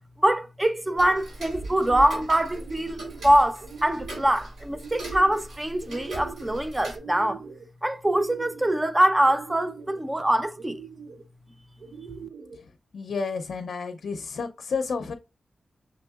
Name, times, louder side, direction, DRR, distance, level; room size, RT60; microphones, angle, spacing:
voice 1, 0.2-7.4 7.8-10.8, right 1 dB, 15° right, 0.4 m, -23 dB
sound 1, 0.7-1.2 1.6-2.2 2.5-3.3 3.6-4.3 4.7-5.5 5.8-6.6 6.9-7.7 8.0-8.8 9.3-10.0 10.6-11.2 11.8-12.6, right 6 dB, 65° right, 0.6 m, -42 dB
Tick-tock, 1.0-7.0, right 1 dB, 85° right, 2.5 m, -39 dB
voice 2, 12.5-15.1, left 5 dB, 75° left, 0.5 m, -31 dB
5.9 x 3.5 x 2.3 m
wide cardioid pair, 150°, 0 cm